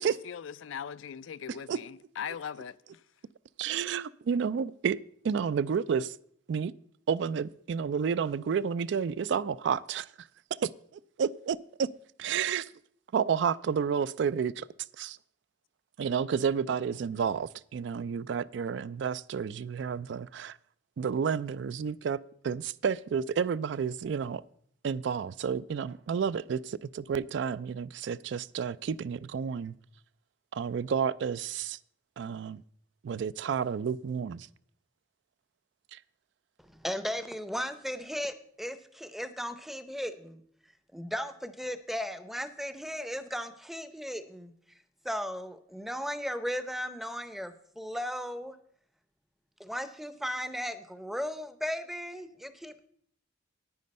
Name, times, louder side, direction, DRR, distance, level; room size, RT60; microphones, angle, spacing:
voice 1, 0.2-3.0, left 8 dB, 80° left, 0.4 m, -40 dB
voice 2, 3.6-5.0 5.2-6.2 6.5-6.7 7.1-10.3 10.6-10.7 11.2-11.9 12.2-12.7 13.1-14.7 15.0-15.2 16.0-20.6 21.0-24.4 24.8-29.7 30.5-31.8 32.2-32.6 33.0-34.5 35.9-36.0, right 6 dB, 65° right, 0.3 m, -30 dB
voice 3, 36.6-40.4 40.9-44.5 45.0-48.6 49.6-52.8, equal, ahead, 0.6 m, -36 dB
9.5 x 9.4 x 5.3 m
head